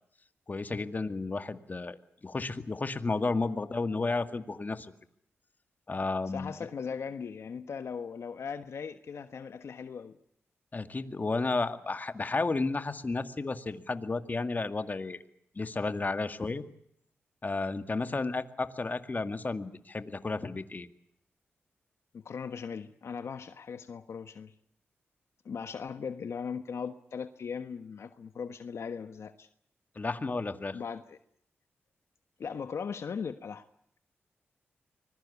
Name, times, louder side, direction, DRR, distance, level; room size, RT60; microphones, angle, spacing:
voice 1, 0.5-2.0 2.2-4.9 5.9-6.5 10.7-15.2 15.6-16.6 17.4-20.9 30.0-30.8, left 3 dB, 35° left, 9 dB, 2.1 m, -32 dB
voice 2, 6.3-10.1 18.1-18.3 22.1-24.5 25.4-29.5 30.7-31.2 32.4-33.6, left 6 dB, 70° left, 9 dB, 1.3 m, -39 dB
25.0 x 21.0 x 8.5 m, 0.70 s
cardioid pair, 60°, 5 cm